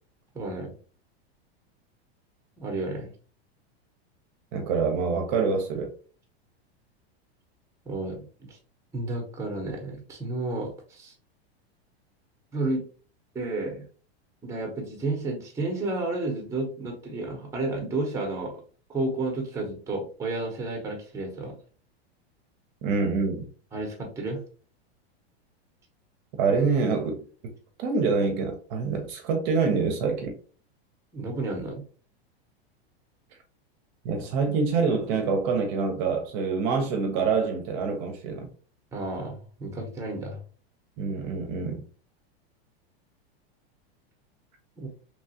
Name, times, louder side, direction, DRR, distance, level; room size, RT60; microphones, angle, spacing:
voice 1, 0.3-0.7 2.6-3.1 7.9-8.6 8.9-11.1 12.5-12.8 13.3-13.8 14.4-18.6 18.9-21.5 23.7-24.4 31.1-31.8 38.9-40.4 44.8-44.9, right 2 dB, 10° right, 0.8 m, -31 dB
voice 2, 4.5-5.9 22.8-23.4 26.4-27.2 27.8-30.3 34.0-38.5 41.0-41.8, right 5 dB, 50° right, 0.6 m, -26 dB
3.0 x 2.3 x 2.7 m
supercardioid pair, 145°, 32 cm